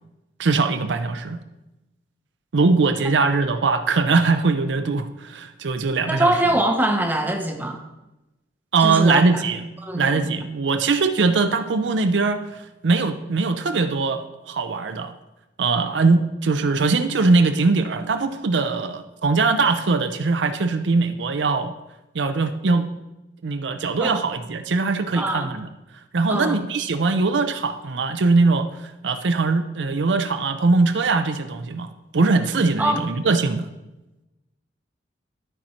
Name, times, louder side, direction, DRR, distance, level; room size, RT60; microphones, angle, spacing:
voice 1, 0.4-1.4 2.5-6.3 8.7-9.7 9.9-15.1 15.6-21.7 22.1-22.9 23.4-25.7 26.1-33.7, right 3 dB, 80° right, 8 dB, 0.6 m, -21 dB
voice 2, 6.1-7.8 8.8-9.4 9.8-10.4 24.0-24.2 25.1-25.5 26.3-26.6 32.8-33.1, right 1 dB, 10° right, 4 dB, 0.8 m, -23 dB
12.5 x 4.3 x 4.4 m, 0.99 s
head